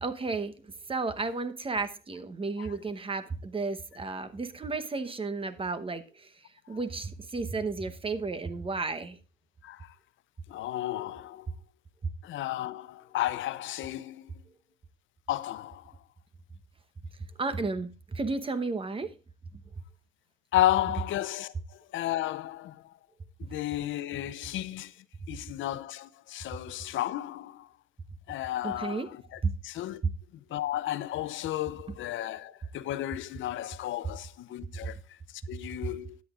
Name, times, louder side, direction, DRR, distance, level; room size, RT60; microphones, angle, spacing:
voice 1, 0.0-0.5 0.9-6.0 6.7-9.2 17.4-19.1 28.6-29.1 29.4-29.5, right 3 dB, 25° right, 0.9 m, -32 dB
voice 2, 9.6-9.9 10.5-11.5 12.2-14.3 15.3-15.9 20.5-22.9 23.4-24.9 25.3-27.7 28.3-30.0 30.5-36.2, left 14 dB, 75° left, 0.6 m, -33 dB
13.0 x 9.4 x 2.4 m
cardioid pair, 90°, 20 cm